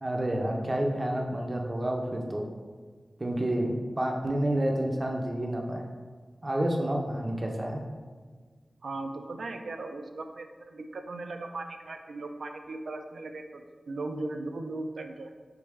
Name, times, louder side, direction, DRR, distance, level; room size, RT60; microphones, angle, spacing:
voice 1, 0.0-2.5 3.2-5.9 6.4-7.8, right 1 dB, 30° right, 1 dB, 0.5 m, -29 dB
voice 2, 8.8-15.3, right 2 dB, 85° right, 5 dB, 0.3 m, -38 dB
4.1 x 3.2 x 3.5 m, 1.5 s
wide cardioid pair, 95°, 0 cm